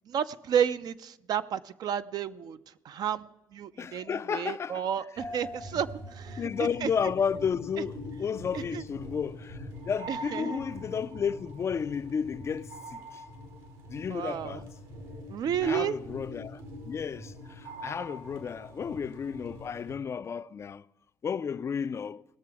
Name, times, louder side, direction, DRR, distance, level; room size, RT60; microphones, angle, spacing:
voice 1, 0.1-2.6 2.8-6.9 8.7-8.8 10.1-10.6 14.1-14.6 15.3-16.0, right 8 dB, 60° right, 0.5 m, -31 dB
voice 2, 3.8-4.9 6.4-13.2 13.9-14.7 15.6-20.9 21.2-22.2, left 7 dB, 40° left, 0.3 m, -32 dB
sound 1, 5.2-20.0, equal, 80° right, 2.6 m, -43 dB
19.0 x 6.8 x 4.7 m
cardioid pair, 85°, 7 cm